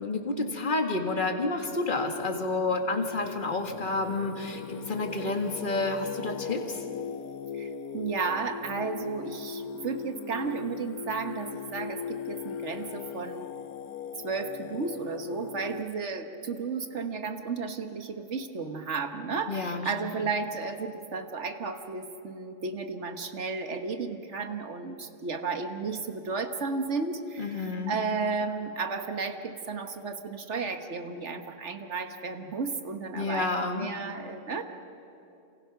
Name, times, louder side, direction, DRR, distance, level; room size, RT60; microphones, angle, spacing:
voice 1, 0.0-4.6 4.9-6.8 19.5-19.9 27.4-28.0 33.1-33.9, left 3 dB, 35° left, 4 dB, 2.0 m, -29 dB
Singing, 2.1-15.8, left 7 dB, 75° left, 1.2 m, -39 dB
voice 2, 7.5-13.5 14.2-34.6, right 4 dB, 50° right, 7 dB, 1.6 m, -33 dB
28.0 x 27.5 x 5.9 m, 2.8 s
omnidirectional pair, 1.6 m